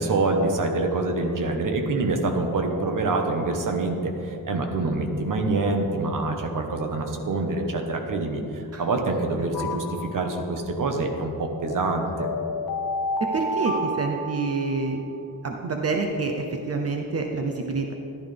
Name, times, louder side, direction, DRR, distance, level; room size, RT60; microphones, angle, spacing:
voice 1, 0.0-12.3, right 2 dB, 55° right, 3 dB, 1.3 m, -26 dB
sound 1, 9.5-10.6 11.7-14.9, left 1 dB, 65° left, 1.1 m, -30 dB
voice 2, 13.2-15.0 15.4-17.9, right 3 dB, 40° right, 2 dB, 0.7 m, -27 dB
14.5 x 11.5 x 3.5 m, 2.8 s
wide cardioid pair, 165°, 38 cm